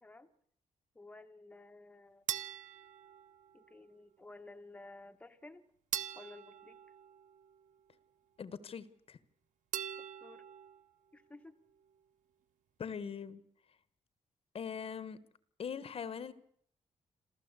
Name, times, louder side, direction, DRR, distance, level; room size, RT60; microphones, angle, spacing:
voice 1, 0.9-2.2 3.5-5.6 6.1-6.8 10.0-10.5 11.1-11.6, left 2 dB, 10° left, 6 dB, 1.2 m, -54 dB
sound 1, 2.3-3.8 5.9-7.8 9.7-10.9, right 10 dB, 90° right, 0.9 m, -42 dB
voice 2, 8.4-9.2 12.8-13.4 14.5-15.2 15.6-16.3, left 7 dB, 50° left, 16 dB, 1.2 m, -41 dB
27.0 x 15.0 x 8.2 m, 0.68 s
cardioid pair, 130°, 13 cm